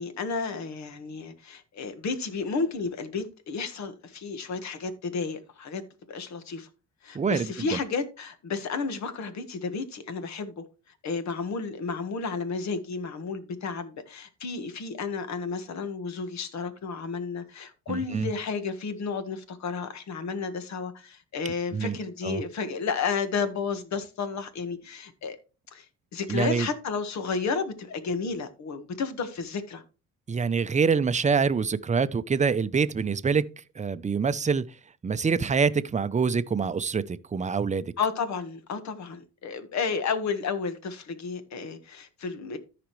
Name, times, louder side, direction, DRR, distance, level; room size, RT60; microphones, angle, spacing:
voice 1, 0.0-6.7 7.0-10.6 11.0-25.4 25.7-25.9 26.1-29.8 38.0-42.6, left 5 dB, 65° left, 1.5 m, -32 dB
voice 2, 7.1-7.8 17.9-18.3 21.7-22.0 22.2-22.4 26.3-26.7 30.3-33.4 33.8-34.6 35.0-37.9, right 5 dB, 25° right, 0.6 m, -25 dB
14.0 x 5.1 x 3.1 m
cardioid pair, 90°, 30 cm